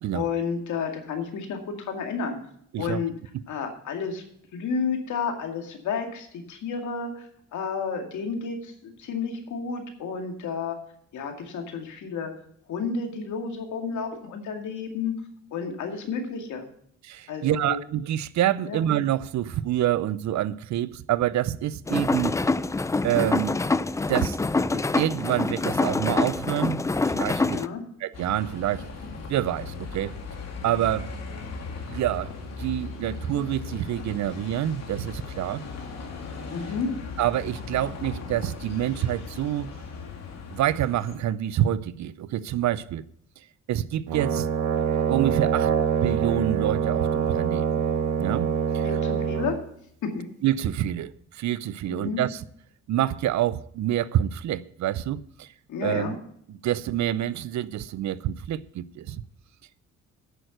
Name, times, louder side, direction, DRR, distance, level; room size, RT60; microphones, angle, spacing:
voice 1, 0.1-2.4 2.8-3.1 3.5-4.2 4.5-10.8 11.1-12.3 12.7-15.1 15.5-16.6 17.3-17.8 18.6-18.8 27.4-27.8 36.5-36.9 48.8-49.6 50.0-50.2 51.9-52.2 55.7-56.1, left 5 dB, 75° left, 2.2 m, -31 dB
voice 2, 17.0-22.3 23.0-23.6 24.1-24.4 24.7-27.6 28.0-28.9 29.3-30.1 30.6-31.1 31.9-32.3 32.6-35.6 37.2-39.7 40.5-43.0 43.7-44.5 45.1-45.7 46.0-47.8 48.2-48.5 48.7-49.0 50.4-52.4 52.9-55.5 55.8-56.2 56.6-59.2, right 12 dB, 65° right, 0.6 m, -27 dB
sound 1, 21.9-27.7, left 3 dB, 10° left, 0.3 m, -25 dB
Bus, 28.1-41.2, left 4 dB, 55° left, 2.3 m, -38 dB
Brass instrument, 44.1-49.6, right 8 dB, 90° right, 1.2 m, -25 dB
9.2 x 6.6 x 7.8 m
cardioid pair, 90°, 30 cm